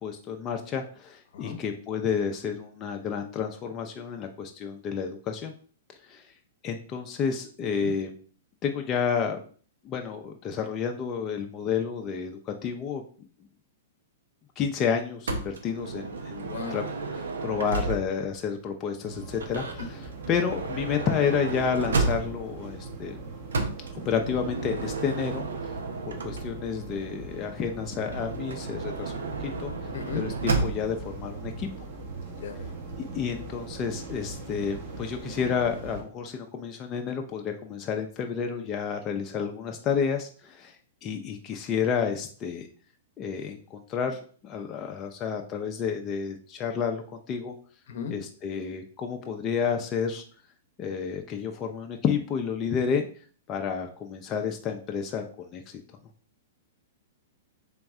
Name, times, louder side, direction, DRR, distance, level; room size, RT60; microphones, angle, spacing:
voice 1, 0.0-5.5 6.1-6.3 6.6-8.1 8.6-9.4 9.8-13.0 14.6-16.8 17.1-23.2 23.9-25.5 26.1-29.7 30.1-31.7 33.1-40.8 41.0-42.7 43.2-47.5 48.1-50.2 50.8-53.1 53.5-55.8, left 6 dB, 30° left, 3 dB, 0.5 m, -30 dB
Motor vehicle (road) / Sliding door, 15.3-18.3 19.3-22.6 23.5-26.8 28.0-31.0, right 3 dB, 85° right, 0.7 m, -32 dB
voice 2, 16.5-16.8 26.5-26.6 29.9-30.2 32.4-32.7 47.9-48.1, left 6 dB, 65° left, 7 dB, 0.7 m, -35 dB
sound 1, 19.0-36.0, right 3 dB, 55° right, 1.3 m, -40 dB
3.6 x 3.0 x 3.5 m, 0.43 s
hypercardioid pair, 125°, 0 cm